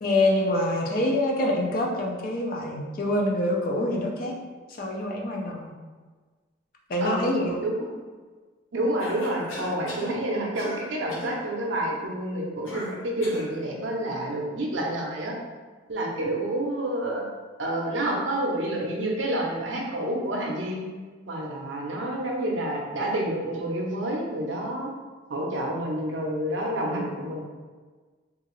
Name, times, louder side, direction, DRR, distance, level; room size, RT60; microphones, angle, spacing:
voice 1, 0.0-4.3 4.8-5.7 6.9-7.6, left 1 dB, 45° left, 0 dB, 0.4 m, -25 dB
voice 2, 7.0-7.9 8.7-15.3 15.9-17.2 17.6-20.8 21.3-24.9 25.3-27.4, right 1 dB, 70° right, -1 dB, 0.6 m, -29 dB
Cough, 9.0-10.1 10.6-10.8 11.1-11.4 12.7-13.5, left 1 dB, 80° left, 0.7 m, -38 dB
2.8 x 2.4 x 3.0 m, 1.4 s
head